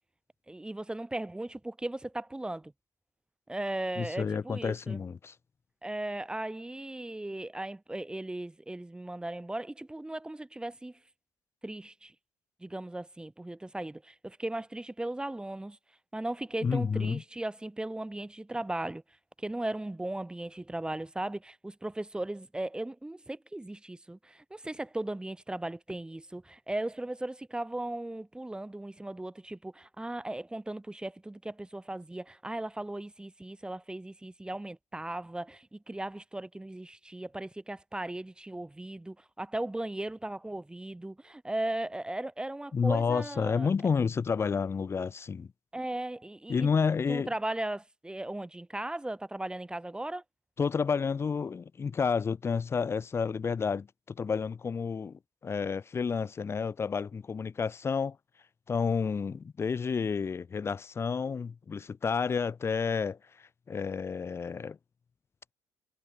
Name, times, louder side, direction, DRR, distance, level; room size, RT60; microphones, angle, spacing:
voice 1, 0.5-2.7 3.5-5.0 5.8-11.0 11.6-12.1 12.6-15.8 16.1-19.0 19.4-43.7 45.7-46.7 47.1-50.2, right 1 dB, 10° right, 2.2 m, -37 dB
voice 2, 4.0-5.3 16.6-17.2 42.7-45.5 46.5-47.3 50.6-58.2 58.7-64.8, left 5 dB, 30° left, 0.6 m, -30 dB
supercardioid pair, 80°, 8 cm